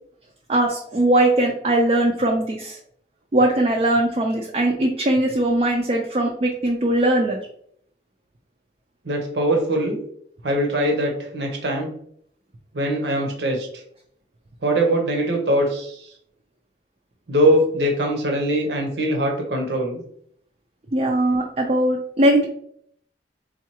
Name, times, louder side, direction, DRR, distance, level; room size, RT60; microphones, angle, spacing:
voice 1, 0.5-2.8 3.3-7.4 20.9-22.5, right 1 dB, 35° right, 0 dB, 0.4 m, -20 dB
voice 2, 9.0-10.0 10.4-11.9 12.7-13.7 14.6-16.1 17.3-20.0, right 1 dB, 80° right, 1 dB, 0.9 m, -22 dB
4.5 x 2.4 x 2.9 m, 0.66 s
head